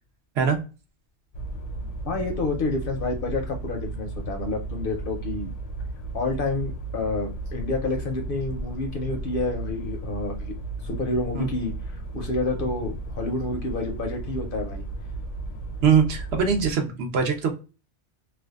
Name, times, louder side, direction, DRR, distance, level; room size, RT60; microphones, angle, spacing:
sound 1, 1.3-16.7, right 2 dB, 85° left, 0.9 m, -34 dB
voice 1, 2.0-5.5 6.1-10.5 10.8-14.8, left 3 dB, 60° left, 3 dB, 0.6 m, -29 dB
voice 2, 15.8-17.5, right 6 dB, 65° right, 5 dB, 0.8 m, -22 dB
2.5 x 2.2 x 2.2 m, 0.32 s
omnidirectional pair, 1.2 m